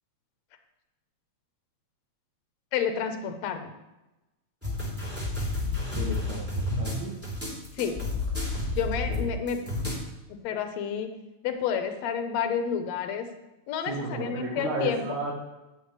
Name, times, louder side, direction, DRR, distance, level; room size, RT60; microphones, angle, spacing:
voice 1, 2.7-3.7 7.8-8.0 8.8-9.6 10.4-11.1 11.4-13.3 13.7-15.0, left 7 dB, 70° left, 7 dB, 2.1 m, -29 dB
sound 1, 4.6-10.0, left 2 dB, 5° right, 3.4 m, -30 dB
voice 2, 5.9-7.2 9.1-9.6 13.9-15.3, right 2 dB, 85° right, -5 dB, 3.2 m, -34 dB
15.0 x 8.4 x 3.2 m, 1.0 s
omnidirectional pair, 3.3 m